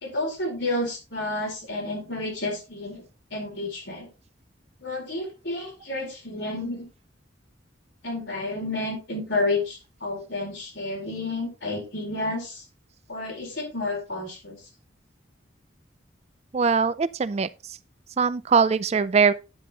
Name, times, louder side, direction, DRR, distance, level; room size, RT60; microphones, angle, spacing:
voice 1, 0.0-3.0 3.3-4.1 4.8-6.9 8.0-12.6 13.1-14.6, left 2 dB, 70° left, 4.4 m, -30 dB
voice 2, 16.5-17.5 18.2-19.3, right 5 dB, 35° right, 0.4 m, -21 dB
9.4 x 7.7 x 3.0 m
head